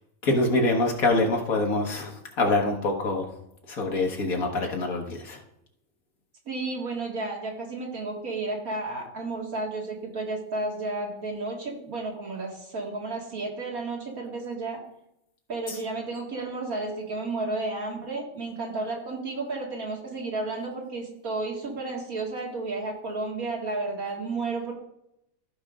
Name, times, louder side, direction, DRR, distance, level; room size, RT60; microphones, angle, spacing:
voice 1, 0.2-3.3 3.7-5.4 15.7-15.8, left 2 dB, 75° left, 1 dB, 1.9 m, -25 dB
voice 2, 6.5-14.8 15.5-24.7, right 3 dB, 80° right, -1 dB, 2.5 m, -32 dB
14.5 x 5.1 x 3.7 m, 0.80 s
omnidirectional pair, 1.5 m